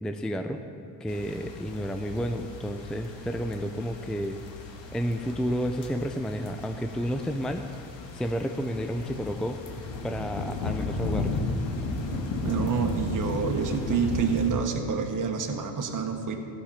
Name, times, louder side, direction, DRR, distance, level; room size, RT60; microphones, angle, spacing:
voice 1, 0.0-0.6 1.0-4.4 4.9-7.6 8.1-9.6 10.0-11.4, equal, ahead, 6 dB, 0.5 m, -31 dB
sound 1, 1.1-14.5, left 3 dB, 60° left, 1.8 m, -34 dB
voice 2, 12.4-16.4, right 6 dB, 40° right, 3 dB, 1.3 m, -28 dB
14.5 x 6.8 x 5.7 m, 2.5 s
hypercardioid pair, 60°, 49 cm